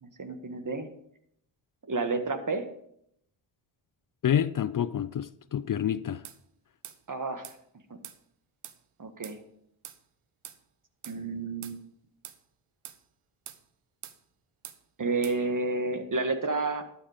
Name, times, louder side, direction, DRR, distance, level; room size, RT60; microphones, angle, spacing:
voice 1, 0.0-0.9 1.8-2.7 7.1-7.4 9.0-9.4 11.1-11.8 15.0-16.8, right 3 dB, 40° right, 1.8 m, -30 dB
voice 2, 4.2-6.2, left 9 dB, 45° left, 0.5 m, -28 dB
sound 1, 6.2-6.4 6.8-7.0 7.4-7.6 8.0-8.2 8.6-8.8 9.2-9.4 9.8-10.0 10.4-10.6 11.0-11.2 11.6-11.8 12.2-12.4 12.8-13.0 13.5-13.6 14.0-14.2 14.6-14.8 15.2-15.4, right 11 dB, 85° right, 0.9 m, -44 dB
12.0 x 7.6 x 5.1 m
supercardioid pair, 50°, 49 cm